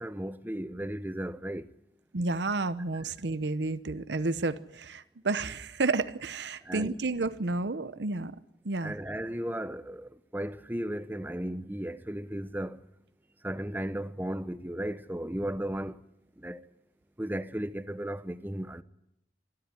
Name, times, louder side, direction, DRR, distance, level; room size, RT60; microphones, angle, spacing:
voice 1, 0.0-1.6 6.7-6.9 8.8-12.8 13.4-15.9 16.4-16.6 17.2-18.8, right 1 dB, 10° right, 0.8 m, -35 dB
voice 2, 2.1-8.3 8.6-9.0, right 3 dB, 75° right, 0.8 m, -31 dB
25.0 x 13.5 x 9.7 m
head